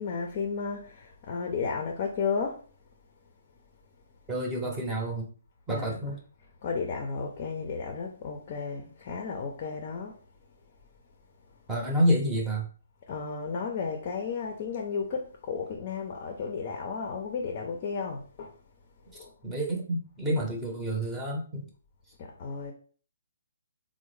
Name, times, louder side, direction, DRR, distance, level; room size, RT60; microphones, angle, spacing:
voice 1, 0.0-2.6 5.7-6.1 6.6-10.2 13.1-18.6 19.1-19.3 22.2-22.7, left 5 dB, 40° left, 0.5 m, -33 dB
voice 2, 4.3-5.3 5.7-6.2 11.7-12.7 19.1-21.6, equal, 10° right, 0.7 m, -29 dB
3.4 x 2.1 x 3.1 m
hypercardioid pair, 145°, 0 cm